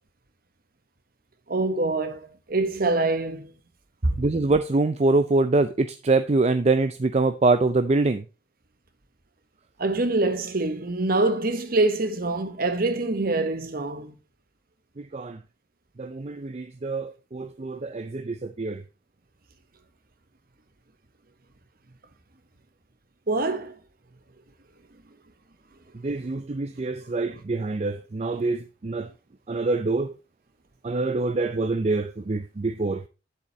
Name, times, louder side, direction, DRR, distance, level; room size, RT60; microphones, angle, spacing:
voice 1, 1.5-3.5 4.0-4.2 9.8-14.2 23.3-23.7, right 2 dB, 50° right, 1.3 m, -25 dB
voice 2, 4.2-8.2 15.0-15.4 16.0-18.8 26.0-29.1 29.5-30.1 30.8-33.0, right 3 dB, 35° right, 0.5 m, -25 dB
10.0 x 8.0 x 3.1 m
head